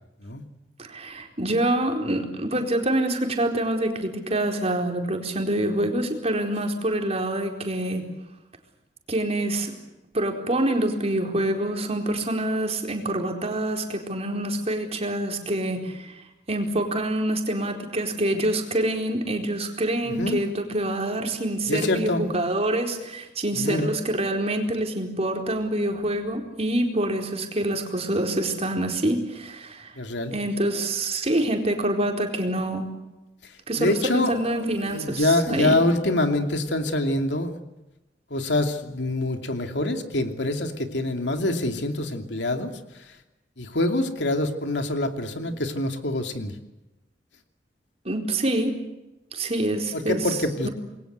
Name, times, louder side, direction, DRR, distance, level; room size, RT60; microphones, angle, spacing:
voice 1, 0.8-8.0 9.1-9.8 10.1-29.9 30.3-32.9 33.7-35.8 45.4-45.5 48.0-48.8 49.3-50.2 50.6-50.7, right 1 dB, 35° right, 3 dB, 4.4 m, -26 dB
voice 2, 20.0-20.4 21.7-22.2 23.5-23.9 29.9-30.3 33.4-37.6 38.3-42.7 43.0-43.1 43.6-46.5 49.9-50.7, left 2 dB, 80° left, 5 dB, 2.7 m, -25 dB
28.0 x 22.0 x 8.1 m, 1.0 s
head